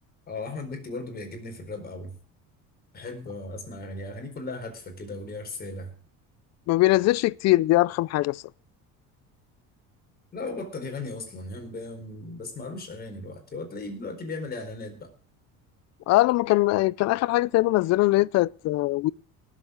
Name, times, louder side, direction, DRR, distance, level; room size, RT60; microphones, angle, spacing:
voice 1, 0.3-2.1 2.9-5.9 10.3-15.1, left 2 dB, 30° left, 4.3 m, -36 dB
voice 2, 6.7-8.4 16.1-19.1, left 18 dB, 50° left, 0.5 m, -21 dB
18.5 x 7.5 x 6.4 m
cardioid pair, 145°, 33 cm